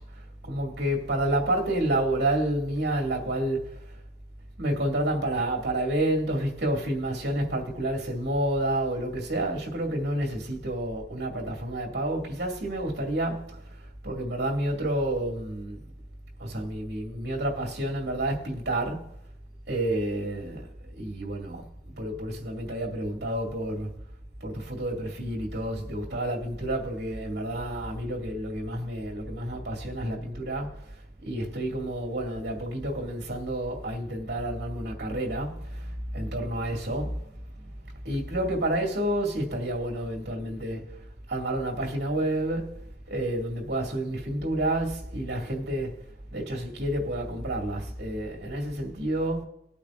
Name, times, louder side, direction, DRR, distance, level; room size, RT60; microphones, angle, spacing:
voice 1, 0.4-4.0 4.6-13.8 14.0-15.8 16.4-19.1 19.7-21.7 22.0-23.9 24.4-30.8 31.2-37.2 38.0-40.8 41.3-46.0 46.3-49.4, right 1 dB, 75° right, 2.4 m, -29 dB
18.5 x 8.7 x 2.5 m
head